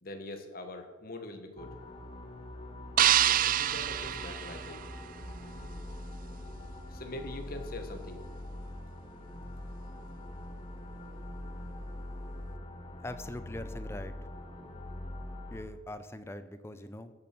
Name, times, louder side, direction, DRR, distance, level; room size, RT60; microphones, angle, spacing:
voice 1, 0.0-1.7 3.3-4.8 6.9-8.2, left 2 dB, 55° left, 6 dB, 1.5 m, -43 dB
sound 1, 1.6-15.6, left 1 dB, 30° left, 1.3 m, -43 dB
sound 2, 3.0-5.3, right 11 dB, 50° right, 0.4 m, -27 dB
voice 2, 13.0-14.1 15.5-17.1, left 1 dB, 15° left, 11 dB, 0.6 m, -42 dB
14.0 x 7.1 x 6.1 m, 1.3 s
head